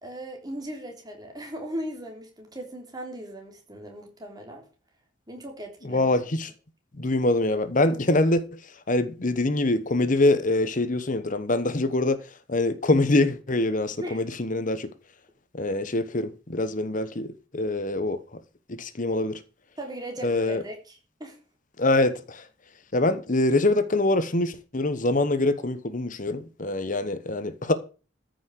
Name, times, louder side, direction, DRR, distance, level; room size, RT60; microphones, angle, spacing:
voice 1, 0.0-4.6 5.3-6.1 14.0-14.2 19.8-21.4, right 1 dB, 20° right, 3.4 m, -38 dB
voice 2, 5.8-6.5 7.0-8.6 8.9-12.2 12.5-14.9 15.5-17.3 17.5-18.2 18.7-19.4 20.2-20.6 21.8-22.4 22.9-27.7, left 2 dB, 40° left, 1.0 m, -24 dB
14.0 x 6.3 x 6.5 m
head